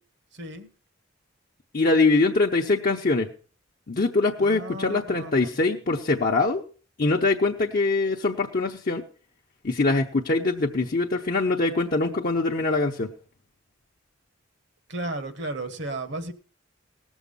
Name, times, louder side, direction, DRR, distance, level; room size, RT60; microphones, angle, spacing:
voice 1, 0.3-0.7 4.4-5.6 14.9-16.3, right 2 dB, 60° right, 10 dB, 1.4 m, -34 dB
voice 2, 1.7-3.3 3.9-6.6 7.0-9.0 9.6-13.1, left 3 dB, 45° left, 0 dB, 0.8 m, -23 dB
18.0 x 7.2 x 5.4 m, 0.40 s
head